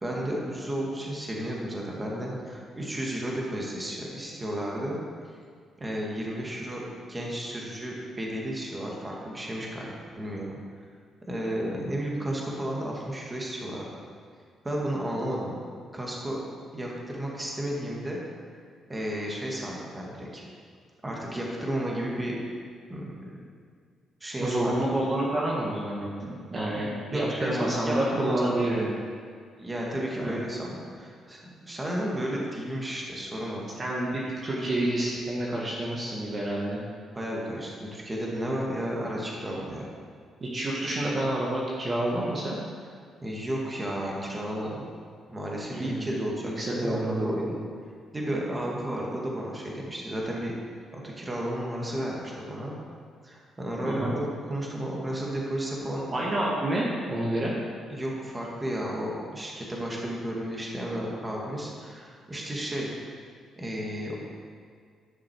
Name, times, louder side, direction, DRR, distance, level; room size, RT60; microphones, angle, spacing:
voice 1, 0.0-5.0 5.8-6.8 7.1-10.5 11.3-13.8 14.6-15.6 15.9-16.4 16.7-18.2 18.9-20.4 21.0-22.4 22.9-23.4 24.2-24.7 27.1-28.9 29.6-33.6 37.1-39.8 43.2-44.8 45.3-47.4 48.1-50.5 50.9-52.7 53.2-56.1 57.9-62.9 63.6-64.2, right 1 dB, 20° right, -3 dB, 2.1 m, -33 dB
voice 2, 24.4-28.9 30.2-30.3 33.8-36.8 40.4-42.6 45.7-46.1 46.4-47.6 53.8-54.1 56.1-57.5, right 1 dB, 35° right, -4 dB, 1.8 m, -28 dB
11.0 x 6.4 x 4.7 m, 2.1 s
cardioid pair, 90°, 0 cm